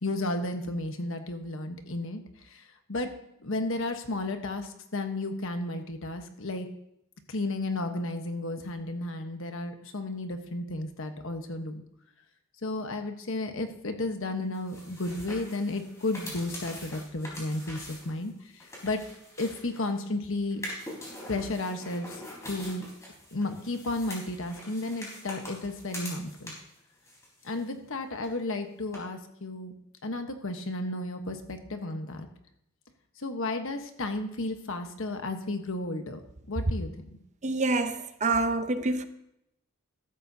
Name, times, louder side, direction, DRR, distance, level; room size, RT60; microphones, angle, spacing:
voice 1, 0.0-3.1 3.4-6.7 7.3-11.8 12.6-19.0 19.4-20.6 21.3-22.2 22.5-22.9 23.3-26.5 27.4-29.7 30.0-32.3 33.2-36.2 36.5-36.9, left 2 dB, 65° left, 1.2 m, -33 dB
sound 1, 14.5-20.0 20.5-26.8 27.0-27.9 28.2-28.3 28.9-29.0, left 1 dB, 15° left, 4.4 m, -44 dB
voice 2, 37.4-39.1, right 3 dB, 35° right, 0.7 m, -27 dB
14.0 x 12.5 x 2.8 m
head